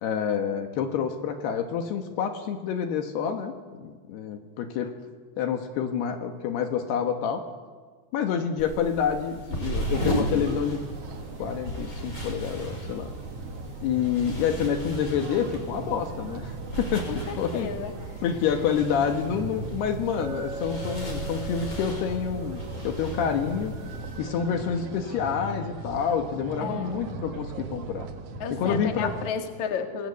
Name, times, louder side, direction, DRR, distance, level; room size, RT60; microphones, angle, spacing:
voice 1, 0.0-5.0 5.4-7.4 8.1-10.8 11.4-13.1 13.8-16.5 16.8-17.7 18.2-23.7 24.2-28.1 28.5-29.1, left 7 dB, 70° left, 6 dB, 3.3 m, -28 dB
sound 1, 8.6-24.2, right 1 dB, 20° left, 5.7 m, -36 dB
sound 2, 9.8-29.3, right 3 dB, 65° right, 1.5 m, -39 dB
voice 2, 17.1-17.9 26.6-27.1 28.4-30.1, left 6 dB, 50° left, 5 dB, 2.9 m, -33 dB
Chink clink, 20.2-24.6, right 1 dB, 85° right, 4.4 m, -42 dB
28.0 x 21.0 x 8.4 m, 1.5 s
omnidirectional pair, 4.9 m